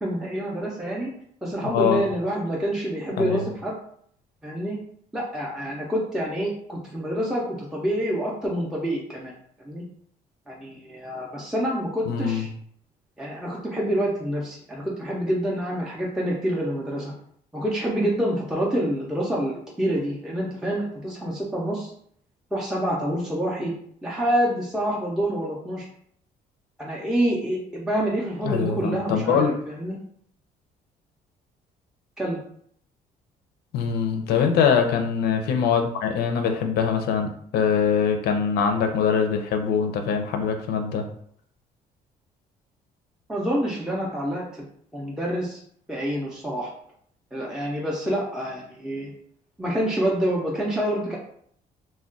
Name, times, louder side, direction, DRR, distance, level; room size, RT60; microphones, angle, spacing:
voice 1, 0.0-1.1 1.4-3.8 4.4-4.8 5.1-9.3 9.6-9.9 10.5-12.5 13.2-17.1 17.5-21.9 22.5-23.7 24.0-25.9 26.8-30.0 32.2-32.4 43.3-45.6 45.9-46.7 47.3-49.1 49.6-51.2, right 1 dB, 5° right, -4 dB, 0.4 m, -27 dB
voice 2, 1.6-2.0 3.2-3.4 12.1-12.5 28.4-29.5 33.7-41.0, left 6 dB, 80° left, 5 dB, 0.5 m, -23 dB
2.3 x 2.1 x 3.7 m, 0.63 s
cardioid pair, 135°, 16 cm